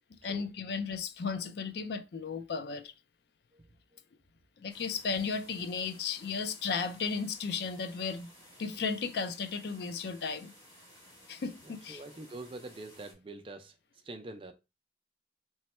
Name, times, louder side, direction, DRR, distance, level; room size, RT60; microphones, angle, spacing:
voice 1, 0.2-2.9 4.6-8.3 8.6-10.5 11.3-12.0, left 5 dB, 65° left, 0.4 m, -35 dB
sound 1, 4.7-13.1, equal, 20° left, 1.1 m, -57 dB
voice 2, 11.6-13.7 14.0-14.5, right 2 dB, 30° right, 0.4 m, -45 dB
3.1 x 2.1 x 4.2 m
head